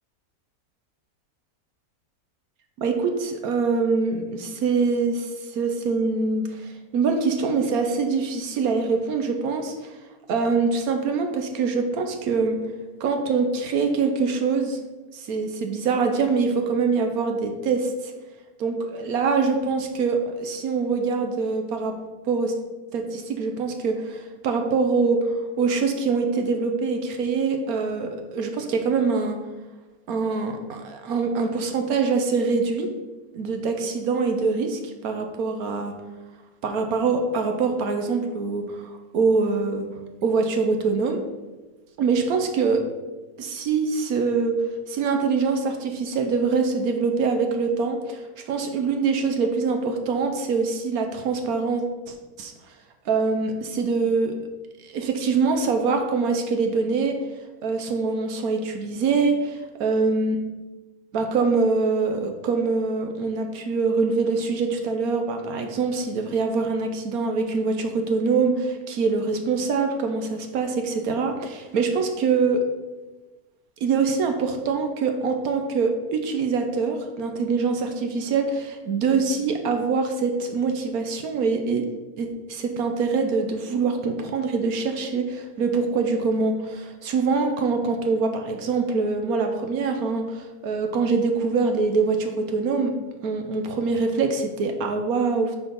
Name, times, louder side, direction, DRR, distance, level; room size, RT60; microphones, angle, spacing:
voice 1, 2.8-9.9 10.3-12.6 13.0-14.8 15.1-18.1 18.6-22.0 22.3-22.5 22.9-25.3 25.6-29.4 30.1-32.9 33.3-35.9 36.6-39.9 40.2-41.2 42.0-42.8 43.4-44.6 44.9-52.5 53.1-54.3 54.8-57.2 57.6-60.4 61.1-72.6 73.8-81.8 82.2-92.9 93.2-95.6, right 4 dB, 80° right, 5 dB, 1.3 m, -24 dB
6.6 x 4.7 x 5.3 m, 1.2 s
omnidirectional pair, 1.6 m